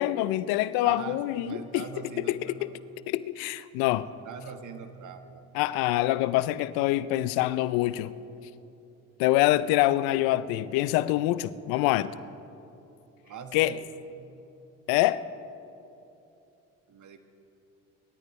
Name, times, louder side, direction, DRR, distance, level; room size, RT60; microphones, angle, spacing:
voice 1, 0.0-1.8 2.2-2.7 3.1-4.1 5.5-8.1 9.2-12.1 13.5-13.7 14.9-15.2, left 15 dB, 80° left, 16 dB, 0.5 m, -25 dB
voice 2, 0.8-2.7 4.2-5.5 10.1-10.3 13.2-13.9 16.9-17.2, right 7 dB, 55° right, 7 dB, 1.5 m, -42 dB
24.0 x 13.5 x 3.2 m, 2.8 s
hypercardioid pair, 60°, 36 cm